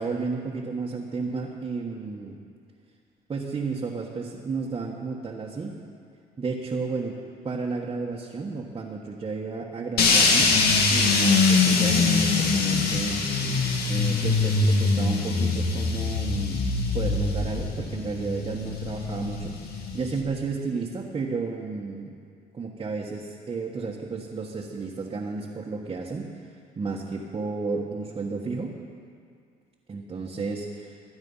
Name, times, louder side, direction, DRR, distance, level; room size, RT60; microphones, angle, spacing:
voice 1, 0.0-2.4 3.3-5.7 6.4-7.2 7.4-10.5 10.9-13.2 13.9-16.6 16.9-22.1 22.5-28.8 29.9-31.0, right 4 dB, 30° right, -3 dB, 1.5 m, -32 dB
sound 1, 10.0-20.2, left 4 dB, 70° left, 2.1 m, -23 dB
23.5 x 9.7 x 5.7 m, 2.3 s
cardioid pair, 110°, 17 cm